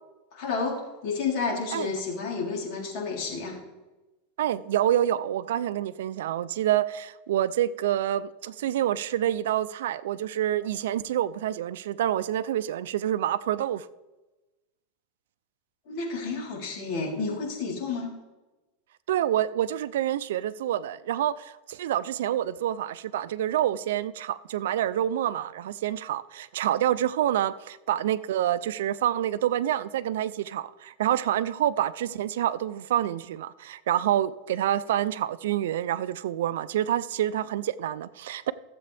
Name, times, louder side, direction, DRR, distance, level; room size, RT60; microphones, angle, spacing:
voice 1, 0.3-3.6 15.9-18.1, left 4 dB, 50° left, 3.7 m, -31 dB
voice 2, 4.4-13.9 19.1-38.5, right 11 dB, 80° right, 0.4 m, -27 dB
15.5 x 7.7 x 3.4 m
supercardioid pair, 155°, 0 cm